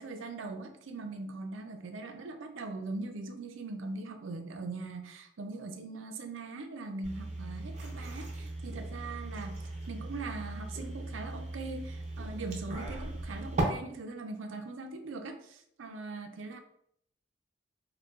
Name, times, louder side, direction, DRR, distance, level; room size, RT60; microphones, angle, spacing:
voice 1, 0.0-9.6 9.9-16.6, right 3 dB, 75° right, 6 dB, 0.5 m, -41 dB
sound 1, 7.0-13.6, right 2 dB, 35° right, 0.6 m, -38 dB
4.4 x 2.2 x 2.4 m, 0.70 s
head